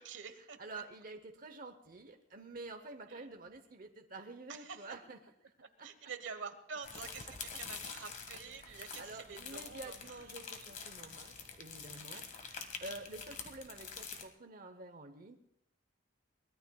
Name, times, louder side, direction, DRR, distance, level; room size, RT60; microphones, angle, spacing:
voice 1, 0.0-0.8 3.1-3.3 4.5-5.0 5.6-10.3 12.1-12.3, right 6 dB, 70° right, 10 dB, 1.2 m, -48 dB
voice 2, 0.6-5.2 5.8-5.9 8.6-15.4, right 2 dB, 45° right, 6 dB, 0.8 m, -49 dB
sound 1, 6.8-14.2, left 5 dB, 40° left, 1.7 m, -47 dB
23.0 x 19.5 x 2.3 m, 0.78 s
head